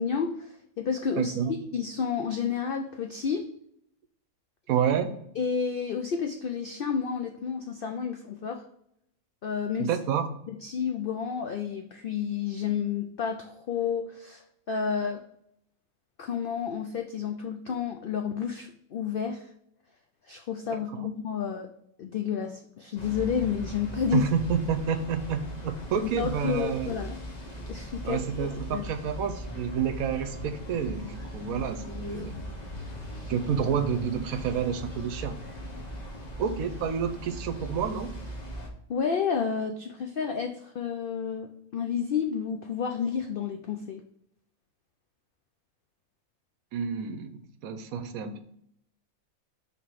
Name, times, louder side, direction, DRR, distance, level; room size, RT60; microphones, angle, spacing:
voice 1, 0.0-1.3 1.7-3.5 5.4-8.6 9.4-9.9 10.5-14.4 14.7-15.2 16.2-19.5 20.3-21.7 22.0-24.2 26.0-27.2 27.7-28.2 28.7-28.9 38.9-44.0, left 7 dB, 75° left, 4 dB, 0.5 m, -30 dB
voice 2, 1.2-1.5 4.7-5.2 9.8-10.3 20.7-21.1 24.1-26.9 28.1-32.4 33.3-35.4 36.4-38.2 46.7-48.4, right 7 dB, 75° right, 8 dB, 1.1 m, -29 dB
sound 1, 23.0-38.7, equal, 30° left, 1.1 m, -39 dB
5.7 x 3.8 x 4.6 m, 0.72 s
omnidirectional pair, 1.5 m